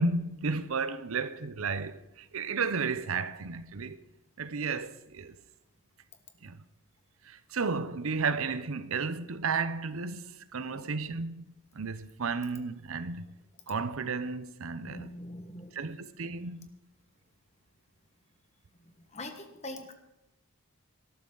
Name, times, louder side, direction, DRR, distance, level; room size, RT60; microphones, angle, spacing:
voice 1, 0.0-4.0 4.4-5.4 6.4-6.6 7.2-11.5 11.7-13.3 13.7-15.2 15.7-16.7, right 4 dB, 70° right, 0.7 m, -33 dB
voice 2, 14.8-15.7 19.1-19.9, left 1 dB, 30° left, 1.4 m, -43 dB
18.5 x 13.0 x 3.9 m
head